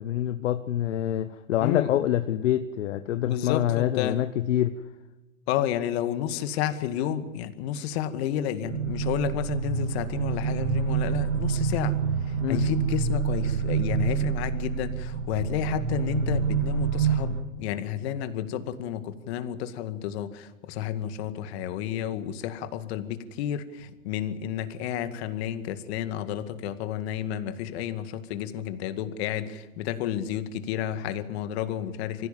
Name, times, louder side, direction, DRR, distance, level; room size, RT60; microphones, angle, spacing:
voice 1, 0.0-4.7 12.4-12.6, left 12 dB, 70° left, 10 dB, 1.1 m, -26 dB
voice 2, 1.6-1.9 3.2-4.2 5.5-12.0 12.2-32.3, left 10 dB, 55° left, 10 dB, 2.1 m, -31 dB
sound 1, 8.6-17.4, right 6 dB, 65° right, 3.1 m, -27 dB
24.5 x 16.0 x 7.5 m, 1.2 s
hypercardioid pair, 110°, 38 cm